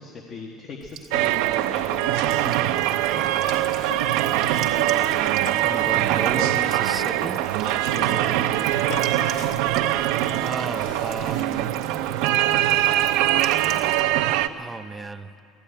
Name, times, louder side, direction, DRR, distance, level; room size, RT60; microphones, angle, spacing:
voice 1, 0.0-3.6 7.9-8.6, left 4 dB, 30° left, 2 dB, 1.3 m, -40 dB
Buzz / Water tap faucet / Trickle dribble, 0.8-14.0, right 9 dB, 45° right, 1.9 m, -43 dB
sound 1, 1.1-14.5, right 13 dB, 75° right, 0.7 m, -22 dB
sound 2, 2.2-12.3, left 4 dB, 60° left, 2.6 m, -41 dB
voice 2, 5.6-7.5 10.4-11.7 14.6-15.3, right 3 dB, 10° right, 10 dB, 0.6 m, -34 dB
19.0 x 14.0 x 10.0 m, 2.6 s
cardioid pair, 165°, 0 cm